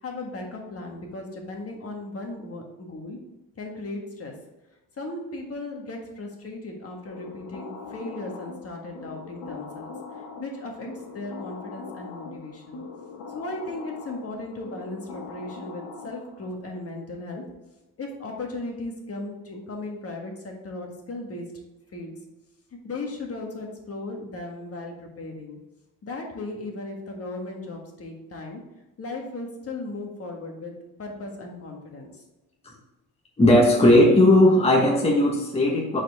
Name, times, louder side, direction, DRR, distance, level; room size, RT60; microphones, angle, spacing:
voice 1, 0.0-3.2 3.6-4.4 5.0-12.8 13.3-17.4 18.0-21.5 21.9-22.1 22.8-25.6 26.0-28.6 29.0-30.7 31.0-32.2, left 2 dB, 40° left, 1 dB, 1.5 m, -36 dB
sound 1, 7.1-16.5, left 4 dB, 85° left, 1.5 m, -41 dB
voice 2, 33.4-36.0, left 1 dB, 15° left, -2 dB, 1.2 m, -17 dB
7.9 x 4.4 x 3.5 m, 1.0 s
cardioid pair, 120°, 37 cm